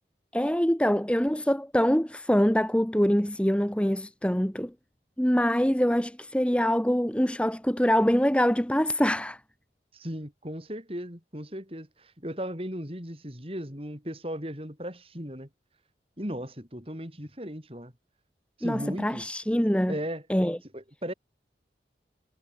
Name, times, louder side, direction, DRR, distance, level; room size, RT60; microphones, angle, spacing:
voice 1, 0.3-4.7 5.2-9.4 18.6-19.9 20.3-20.6, equal, 5° left, 1.3 m, -24 dB
voice 2, 9.9-15.5 16.2-17.9 18.6-19.3 19.9-20.2 20.7-21.1, equal, 30° right, 7.9 m, -36 dB
head